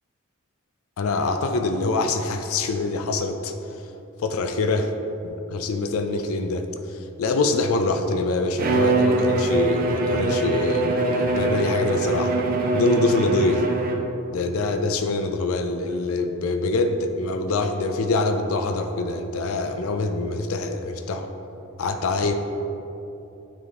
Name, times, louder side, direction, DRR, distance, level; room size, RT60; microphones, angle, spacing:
voice 1, 1.0-3.9 4.2-4.9 5.2-12.3 12.7-13.6 14.3-21.3 21.8-22.3, left 3 dB, 70° left, 6 dB, 0.4 m, -24 dB
Bowed string instrument, 8.6-14.2, right 3 dB, 40° right, 0.4 m, -23 dB
9.5 x 3.5 x 3.6 m, 2.9 s
head